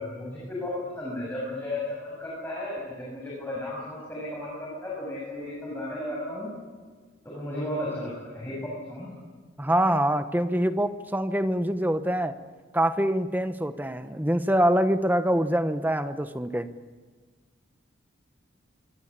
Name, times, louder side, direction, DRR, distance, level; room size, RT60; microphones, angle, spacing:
voice 1, 0.0-6.5 7.2-9.1, left 1 dB, 10° left, -5 dB, 7.7 m, -34 dB
voice 2, 9.6-12.4 12.7-16.7, right 1 dB, 10° right, 10 dB, 1.1 m, -25 dB
25.5 x 24.5 x 8.8 m, 1.5 s
head